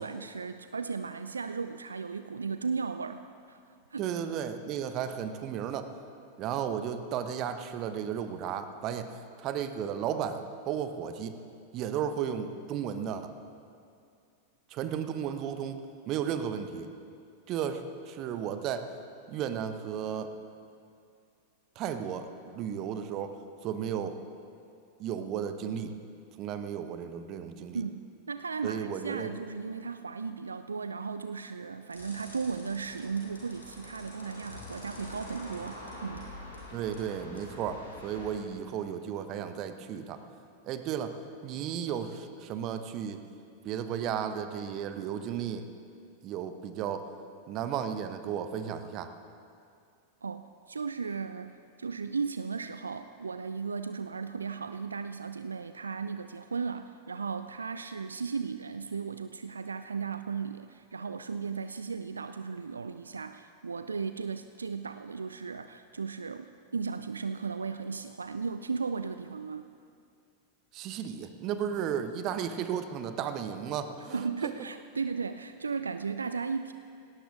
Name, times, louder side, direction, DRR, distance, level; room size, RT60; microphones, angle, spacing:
voice 1, 0.0-3.6 3.9-4.1 27.7-36.3 50.2-69.7 74.1-76.7, right 5 dB, 75° right, 10 dB, 0.4 m, -36 dB
voice 2, 4.0-5.9 6.4-11.4 11.7-13.3 14.7-16.9 17.5-18.9 19.3-20.3 21.7-24.2 25.0-26.0 26.4-27.8 28.6-29.3 36.7-40.2 40.6-41.2 41.4-43.2 43.6-45.7 46.2-47.1 47.5-49.1 70.7-74.5, right 8 dB, 40° right, 9 dB, 1.0 m, -34 dB
sound 1, 31.9-38.3, left 2 dB, 80° left, 4.4 m, -46 dB
19.0 x 17.5 x 3.7 m, 2.4 s
figure-of-eight pair, 90°, 0 cm